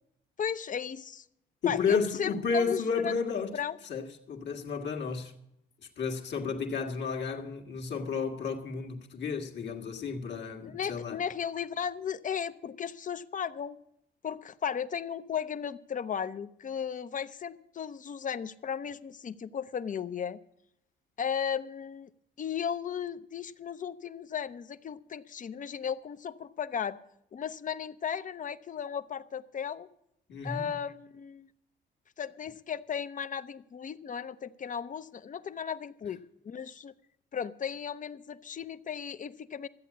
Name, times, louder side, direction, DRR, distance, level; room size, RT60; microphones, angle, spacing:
voice 1, 0.4-1.2 1.7-3.1 3.5-3.8 10.6-13.8 14.2-20.4 21.2-22.1 22.4-27.0 27.3-29.9 30.4-31.5 32.2-36.9 37.3-39.7, left 7 dB, 40° left, 0.6 m, -35 dB
voice 2, 1.6-3.6 3.8-5.3 6.0-11.2 30.3-30.7, left 5 dB, 60° left, 1.7 m, -32 dB
13.5 x 8.3 x 8.2 m
cardioid pair, 90°, 20 cm